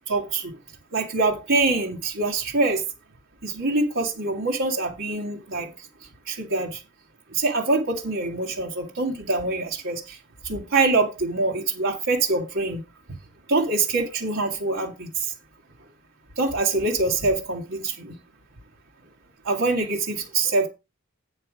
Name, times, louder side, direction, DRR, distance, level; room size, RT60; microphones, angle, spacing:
voice 1, 0.1-0.5 0.9-2.8 3.4-5.7 6.3-6.8 7.3-10.2 10.4-12.8 13.5-15.3 16.4-18.2 19.5-20.7, right 3 dB, 60° right, 1.8 m, -24 dB
8.9 x 5.6 x 5.0 m
head